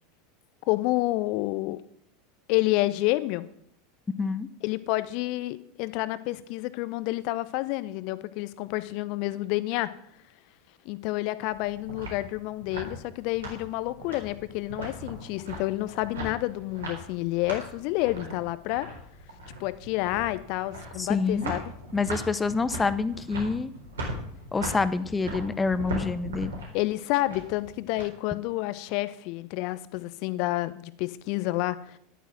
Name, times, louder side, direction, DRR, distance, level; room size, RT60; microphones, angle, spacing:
voice 1, 0.7-1.8 2.5-3.5 4.6-9.9 10.8-18.9 19.6-21.7 26.7-32.0, left 18 dB, 50° left, 16 dB, 0.8 m, -29 dB
voice 2, 4.2-4.5 21.0-21.6 21.9-23.7 24.5-26.5, left 4 dB, 15° left, 15 dB, 0.8 m, -27 dB
sound 1, 11.4-28.0, right 1 dB, 70° right, 3.9 m, -39 dB
11.5 x 9.1 x 6.1 m, 0.70 s
figure-of-eight pair, 80°, 0 cm